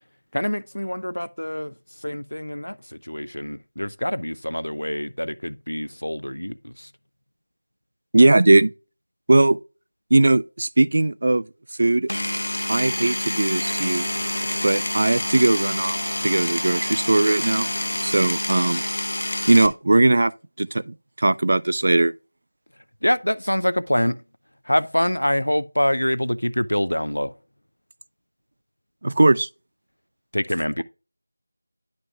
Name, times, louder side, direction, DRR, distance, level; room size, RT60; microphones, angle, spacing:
voice 1, 0.3-1.7 2.0-2.8 3.0-6.9 23.0-24.2 24.7-27.3 30.3-30.8, equal, 75° left, 0.5 m, -25 dB
voice 2, 8.1-8.7 9.3-9.6 10.1-11.5 11.8-12.1 12.7-14.1 14.6-16.0 16.2-17.7 18.0-18.8 19.5-20.3 20.6-22.1 29.0-29.5, right 2 dB, 40° right, 0.3 m, -19 dB
Power tool, 12.1-19.7, left 1 dB, 55° left, 0.9 m, -27 dB
sound 1, 13.2-18.2, right 1 dB, 5° right, 0.8 m, -44 dB
10.5 x 5.3 x 2.3 m
figure-of-eight pair, 170°, 0 cm